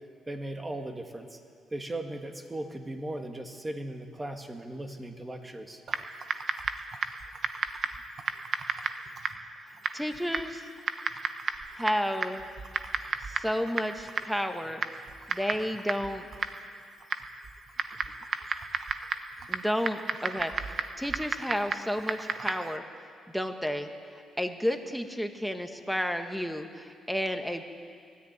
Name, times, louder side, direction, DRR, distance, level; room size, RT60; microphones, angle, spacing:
voice 1, 0.3-1.4 1.7-5.8, right 1 dB, 20° right, 5 dB, 2.0 m, -37 dB
Typing, 5.9-22.8, right 5 dB, 50° right, 1.1 m, -35 dB
voice 2, 9.9-10.7 11.7-12.4 13.2-14.8 15.3-16.3 19.5-22.8 23.3-27.6, equal, ahead, 6 dB, 1.6 m, -32 dB
20.0 x 14.0 x 9.6 m, 2.2 s
cardioid pair, 90°, 0 cm